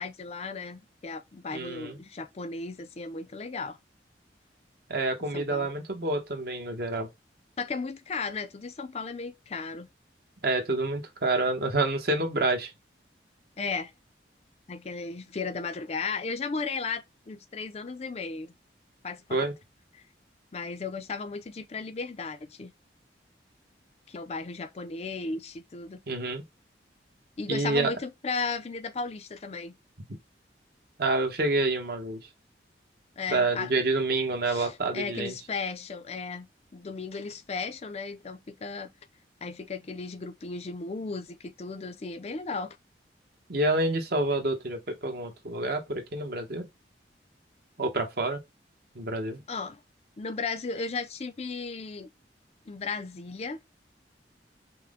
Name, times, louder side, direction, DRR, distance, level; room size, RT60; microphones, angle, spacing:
voice 1, 0.0-3.8 5.3-5.7 7.6-9.9 13.6-13.9 14.7-18.5 19.0-19.5 19.9-20.0 20.5-22.7 24.1-26.0 27.4-29.7 33.2-33.7 34.5-36.5 36.7-38.9 39.4-42.8 49.5-49.8 50.2-52.1 52.7-53.7, left 4 dB, 35° left, 0.4 m, -35 dB
voice 2, 1.5-2.0 4.9-7.1 10.4-12.7 19.3-19.5 26.1-26.4 27.5-27.9 31.0-32.2 33.3-35.3 43.5-46.7 47.8-48.4 48.9-49.4, right 2 dB, 55° right, 1.0 m, -28 dB
5.7 x 2.1 x 3.5 m
head